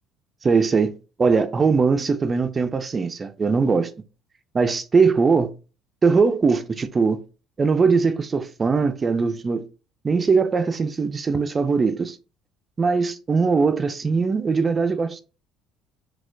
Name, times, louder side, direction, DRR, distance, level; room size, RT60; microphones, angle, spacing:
voice 1, 0.4-3.9 4.5-5.5 6.0-7.2 7.6-9.7 10.0-12.2 12.8-15.2, right 4 dB, 30° right, 0.3 m, -21 dB
4.1 x 2.2 x 2.5 m
supercardioid pair, 75°, 0 cm